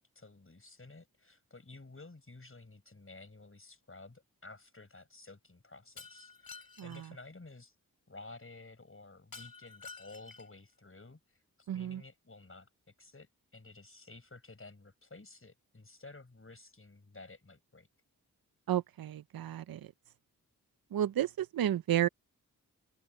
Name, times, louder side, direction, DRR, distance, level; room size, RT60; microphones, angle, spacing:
voice 1, 0.0-7.7 8.1-12.7 13.0-17.9, left 3 dB, 35° left, 5.8 m, -53 dB
Shatter, 6.0-7.1 9.3-10.6, left 5 dB, 70° left, 5.8 m, -50 dB
voice 2, 11.7-12.0 18.7-19.9 20.9-22.1, right 11 dB, 80° right, 0.6 m, -32 dB
cardioid pair, 45°, 36 cm